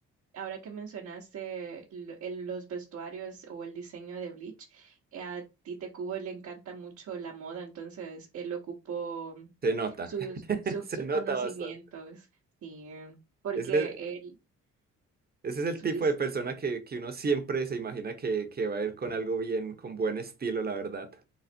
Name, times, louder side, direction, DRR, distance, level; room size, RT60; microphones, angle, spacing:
voice 1, 0.3-8.6 8.8-9.5 10.1-10.4 10.7-10.8 11.1-12.3 12.6-13.2 13.4-14.2 15.8-16.0, right 6 dB, 60° right, 1.1 m, -39 dB
voice 2, 9.6-10.1 10.5-11.7 13.6-13.9 15.4-21.1, right 4 dB, 30° right, 0.9 m, -31 dB
4.1 x 2.0 x 4.3 m
cardioid pair, 90°, 30 cm